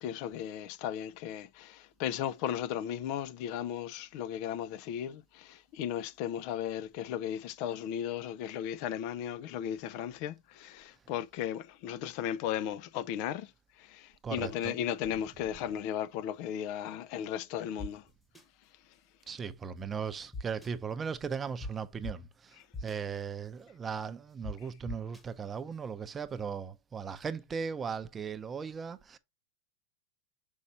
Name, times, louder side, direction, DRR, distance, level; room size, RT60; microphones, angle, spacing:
voice 1, 0.0-13.5 13.8-18.0, left 10 dB, 55° left, 0.5 m, -36 dB
voice 2, 14.2-14.8 19.3-29.2, right 6 dB, 20° right, 0.7 m, -37 dB
sound 1, 17.8-17.9 18.3-18.4 20.3-20.7 21.6-21.7 22.0-22.1 22.7-23.0 24.4-24.5 24.9-25.2, left 2 dB, 10° left, 1.2 m, -39 dB
6.4 x 5.5 x 2.7 m
hypercardioid pair, 120°, 0 cm